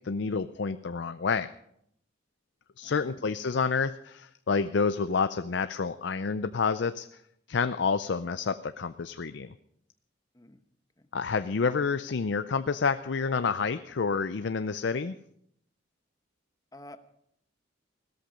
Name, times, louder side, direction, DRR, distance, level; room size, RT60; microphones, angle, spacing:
voice 1, 0.0-1.5 2.8-7.1 7.5-9.5 11.1-15.2, left 5 dB, 65° left, 11 dB, 0.5 m, -29 dB
voice 2, 2.8-3.3 10.3-10.6 11.0-11.1 16.7-17.0, left 1 dB, 20° left, 9 dB, 1.0 m, -50 dB
17.0 x 13.0 x 5.1 m, 0.72 s
head